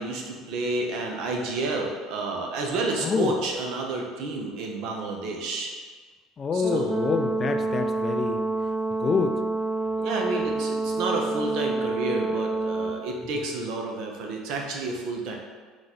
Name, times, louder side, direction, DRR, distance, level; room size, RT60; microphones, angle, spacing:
voice 1, 0.0-5.7 6.5-7.0 10.0-15.3, right 3 dB, 70° right, 1 dB, 0.8 m, -30 dB
voice 2, 3.0-3.3 6.4-8.5 9.0-9.4, left 5 dB, 30° left, 7 dB, 0.4 m, -26 dB
Brass instrument, 6.6-13.0, right 3 dB, 25° right, 0.7 m, -28 dB
3.9 x 3.1 x 4.0 m, 1.5 s
supercardioid pair, 110°, 0 cm